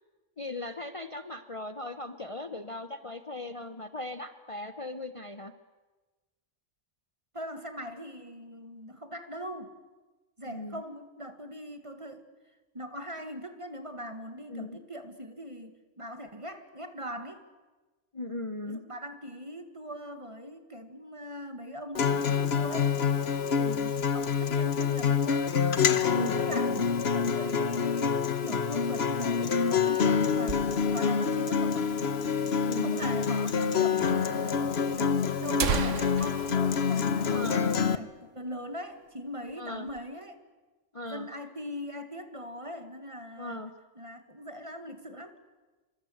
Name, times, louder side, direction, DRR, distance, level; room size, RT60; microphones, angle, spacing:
voice 1, 0.4-5.5 10.4-10.8 14.5-14.8 18.1-18.8 23.5-23.9 26.1-26.4 32.6-33.0 37.3-37.8 39.6-39.9 40.9-41.3 43.4-43.7, left 2 dB, 30° left, 9 dB, 1.0 m, -38 dB
voice 2, 7.3-9.8 10.4-12.3 12.7-17.4 18.7-23.0 24.1-25.5 25.9-32.0 32.8-40.4 41.1-43.7 44.0-45.3, equal, 25° right, 8 dB, 2.1 m, -41 dB
Acoustic guitar, 22.0-38.0, left 6 dB, 60° left, 1.3 m, -27 dB
sound 1, 30.5-31.2 31.5-31.6 31.8-31.9 32.6-32.7 33.6-33.8 34.1-34.2 34.9-35.0 35.4-38.0 38.3-38.4 38.8-39.1 39.5-40.1, right 6 dB, 80° right, 1.5 m, -35 dB
27.0 x 25.5 x 8.0 m, 1.2 s
omnidirectional pair, 1.2 m